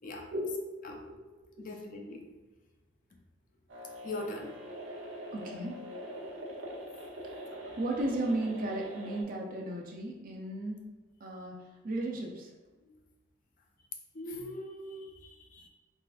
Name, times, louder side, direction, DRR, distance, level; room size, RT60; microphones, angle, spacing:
voice 1, 1.6-2.3 4.0-4.5 14.1-15.7, left 1 dB, 45° left, 2 dB, 0.5 m, -41 dB
sound 1, 3.7-9.2, equal, 80° right, 0.8 m, -44 dB
voice 2, 5.3-5.8 7.8-10.8 11.2-11.6 11.8-12.5, right 1 dB, 45° right, 0 dB, 0.5 m, -34 dB
3.8 x 3.2 x 2.4 m, 1.2 s
head